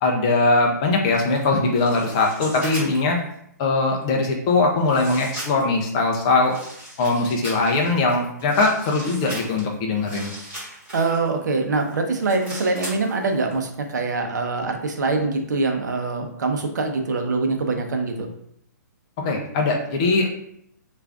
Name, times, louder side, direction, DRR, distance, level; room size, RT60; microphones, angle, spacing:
voice 1, 0.0-3.2 3.6-6.6 7.0-10.3 19.2-20.3, left 3 dB, 20° left, 1 dB, 0.4 m, -21 dB
sound 1, 1.1-3.2 4.0-4.1 4.8-5.8 6.4-11.3 11.7-13.5 13.8-13.9, equal, 10° right, 1.3 m, -38 dB
voice 2, 10.9-18.3, right 3 dB, 70° right, 4 dB, 0.7 m, -24 dB
3.4 x 2.5 x 3.4 m, 0.71 s
hypercardioid pair, 170°, 10 cm